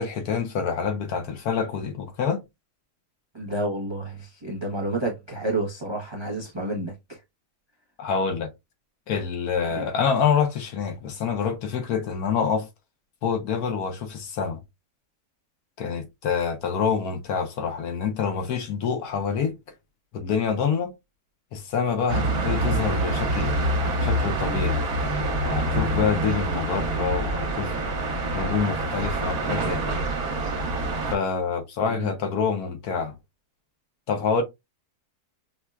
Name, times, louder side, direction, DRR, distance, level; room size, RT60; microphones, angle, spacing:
voice 1, 0.0-2.4 8.0-8.5 9.1-12.7 13.2-14.6 15.8-19.6 20.1-20.9 21.5-23.6 24.0-24.8 25.5-27.7 28.3-30.0 31.1-33.2 34.1-34.4, left 6 dB, 70° left, 1.2 m, -26 dB
voice 2, 3.3-7.2 9.7-9.8 31.8-32.1, right 1 dB, 45° right, 0.3 m, -30 dB
sound 1, 22.1-31.2, right 1 dB, 65° right, 1.4 m, -26 dB
5.7 x 2.1 x 2.2 m
omnidirectional pair, 1.7 m